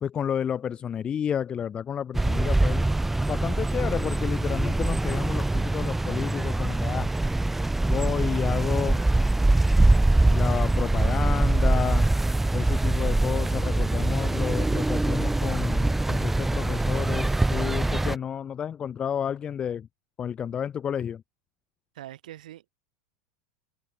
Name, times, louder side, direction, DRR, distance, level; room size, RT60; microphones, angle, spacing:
voice 1, 0.0-2.9 3.3-7.1 7.9-9.0 10.3-12.1 12.5-19.9 20.2-21.2, left 8 dB, 25° left, 0.9 m, -31 dB
sound 1, 2.1-18.2, right 2 dB, 5° right, 1.8 m, -23 dB
voice 2, 21.9-22.7, right 13 dB, 85° right, 6.8 m, -43 dB
supercardioid pair, 140°, 4 cm